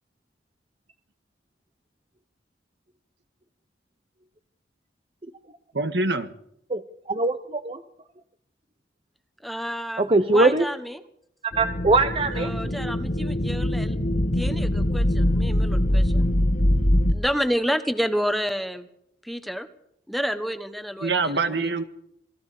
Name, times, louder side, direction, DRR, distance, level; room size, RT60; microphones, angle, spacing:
voice 1, 5.7-6.3 12.6-12.7 21.0-21.8, right 3 dB, 75° right, 1.7 m, -25 dB
voice 2, 7.1-7.8 10.0-10.7 11.6-12.5, right 2 dB, 30° right, 0.8 m, -21 dB
voice 3, 9.4-11.0 12.3-14.0 14.3-16.3 17.1-18.9 19.2-19.7 20.1-21.7, equal, ahead, 1.2 m, -29 dB
sound 1, 11.5-17.1, left 1 dB, 50° left, 1.6 m, -23 dB
27.0 x 19.0 x 5.0 m
head